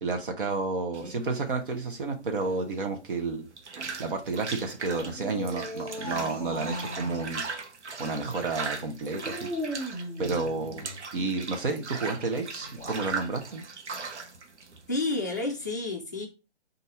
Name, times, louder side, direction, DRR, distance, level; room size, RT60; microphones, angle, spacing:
voice 1, 0.0-3.5 4.0-7.4 8.0-9.5 10.2-10.8 11.1-13.6, right 3 dB, 50° right, 1.0 m, -31 dB
sound 1, 0.9-15.7, right 4 dB, 80° right, 1.0 m, -39 dB
sound 2, 5.1-7.3 9.2-11.0 12.6-13.1, equal, 10° right, 1.4 m, -37 dB
voice 2, 14.9-16.3, left 2 dB, 15° left, 0.4 m, -30 dB
4.1 x 2.7 x 4.2 m
hypercardioid pair, 155°, 34 cm